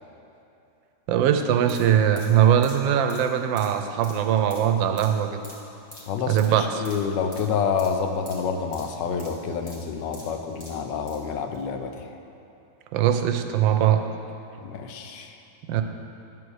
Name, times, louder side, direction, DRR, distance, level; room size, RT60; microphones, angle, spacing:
voice 1, 1.1-5.4 6.3-6.6 12.9-14.0 15.7-15.8, right 9 dB, 90° right, 7 dB, 1.3 m, -21 dB
sound 1, 1.6-11.2 11.5-11.6, left 1 dB, 20° left, 1.6 m, -47 dB
voice 2, 6.1-12.1 14.6-15.4, left 6 dB, 80° left, 6 dB, 1.3 m, -28 dB
9.5 x 4.6 x 6.3 m, 2.8 s
omnidirectional pair, 2.0 m